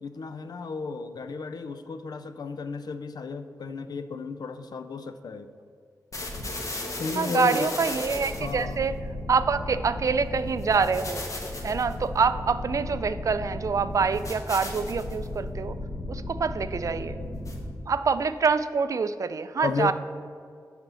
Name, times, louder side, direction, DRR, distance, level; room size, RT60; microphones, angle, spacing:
voice 1, 0.0-5.5 7.0-7.7 8.4-8.8 17.2-17.3 19.6-19.9, left 4 dB, 75° left, 10 dB, 0.5 m, -33 dB
sound 1, 6.1-17.9, left 1 dB, 50° left, 1.2 m, -35 dB
voice 2, 7.2-8.9 9.3-11.2 11.6-15.8 16.1-17.2 17.9-19.9, right 5 dB, 55° right, 12 dB, 0.3 m, -26 dB
8.0 x 4.3 x 6.8 m, 2.3 s
wide cardioid pair, 130°, 7 cm